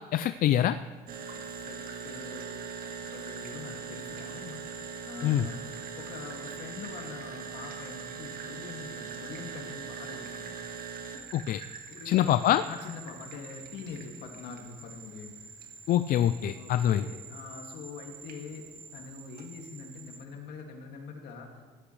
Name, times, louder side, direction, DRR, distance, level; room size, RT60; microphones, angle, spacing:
voice 1, 0.1-0.8 5.2-5.4 11.3-11.6 12.1-12.6 15.9-17.1, left 11 dB, 55° left, 11 dB, 0.4 m, -24 dB
sound 1, 1.1-20.2, right 5 dB, 60° right, 1.6 m, -42 dB
voice 2, 1.3-1.8 2.0-2.5 2.8-10.5 11.9-15.4 16.5-16.7 17.0-18.7 18.9-21.5, left 4 dB, 75° left, 1 dB, 2.3 m, -44 dB
16.5 x 12.0 x 3.3 m, 1.4 s
cardioid pair, 110°, 17 cm